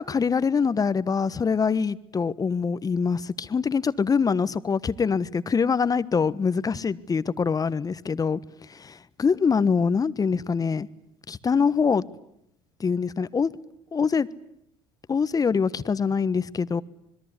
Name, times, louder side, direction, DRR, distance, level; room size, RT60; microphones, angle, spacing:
voice 1, 0.0-8.4 8.7-8.9 9.2-10.9 11.3-12.0 12.8-13.5 13.9-14.3 15.1-16.8, left 5 dB, 30° left, 1.3 m, -24 dB
26.0 x 21.5 x 9.8 m
hypercardioid pair, 70°, 13 cm